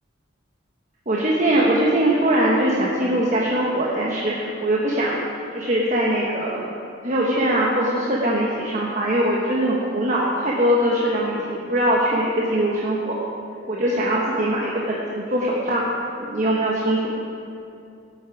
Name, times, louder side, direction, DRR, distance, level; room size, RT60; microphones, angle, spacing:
voice 1, 1.1-5.2 5.5-6.6 7.0-13.2 13.7-15.8 16.2-17.1, right 1 dB, 40° right, -4 dB, 1.1 m, -21 dB
15.0 x 8.5 x 4.9 m, 2.6 s
head